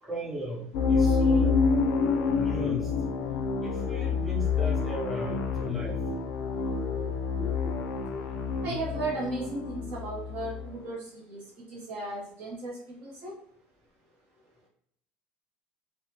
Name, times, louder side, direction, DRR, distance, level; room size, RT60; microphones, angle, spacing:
voice 1, 0.0-1.5 2.4-2.9 3.6-6.0, right 1 dB, ahead, -4 dB, 0.5 m, -37 dB
sound 1, 0.7-10.7, left 5 dB, 55° left, 0.4 m, -28 dB
voice 2, 5.7-6.3 6.7-7.1 7.4-7.7 8.6-11.4 11.7-13.3, right 2 dB, 45° right, -4 dB, 0.7 m, -36 dB
3.3 x 2.0 x 2.8 m, 0.73 s
cardioid pair, 175°, 4 cm